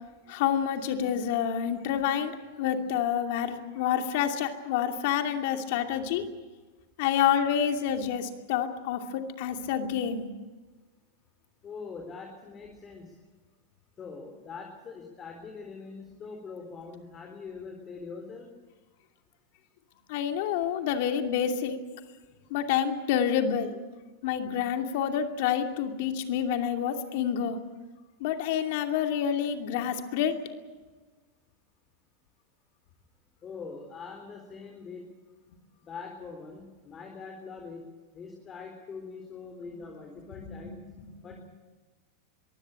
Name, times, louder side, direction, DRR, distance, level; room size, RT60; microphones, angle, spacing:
voice 1, 0.3-6.2 7.0-10.3 20.1-21.8 22.5-23.7 24.2-27.6 28.2-30.4 40.5-40.6 41.0-41.1, left 9 dB, 60° left, 5 dB, 2.6 m, -28 dB
voice 2, 11.6-13.1 14.0-18.5 33.4-35.0 35.8-37.8 38.1-40.8 41.2-41.4, left 5 dB, 25° left, 3 dB, 3.9 m, -43 dB
22.5 x 16.0 x 9.0 m, 1.3 s
supercardioid pair, 125°, 0 cm